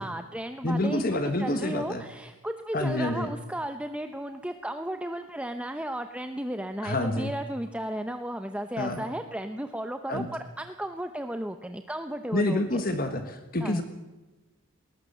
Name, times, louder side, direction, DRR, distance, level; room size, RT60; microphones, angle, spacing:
voice 1, 0.0-12.8 13.6-13.8, right 1 dB, 5° right, 7 dB, 0.8 m, -34 dB
voice 2, 0.6-2.0 2.7-3.3 6.8-7.3 8.8-9.0 10.1-10.3 12.3-13.8, left 1 dB, 40° left, 7 dB, 1.5 m, -28 dB
20.5 x 19.5 x 6.8 m, 1.1 s
head